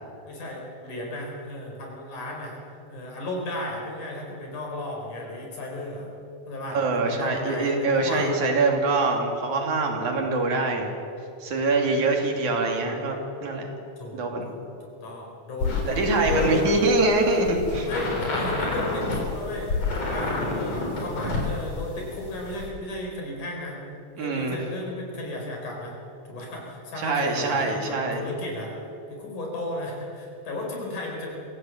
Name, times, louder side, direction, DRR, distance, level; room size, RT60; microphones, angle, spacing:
voice 1, 0.2-2.6 2.9-6.1 6.5-8.3 14.0-16.7 17.8-23.8 24.2-26.0 26.3-28.8 29.1-31.3, left 2 dB, 80° left, 0 dB, 5.9 m, -34 dB
voice 2, 6.7-10.9 11.4-13.7 14.1-14.5 15.9-17.9 24.2-24.6 27.0-28.2, right 3 dB, 75° right, 2 dB, 4.1 m, -24 dB
sound 1, 15.6-22.7, left 3 dB, 55° left, 5.4 m, -29 dB
24.5 x 16.0 x 8.0 m, 2.7 s
omnidirectional pair, 3.5 m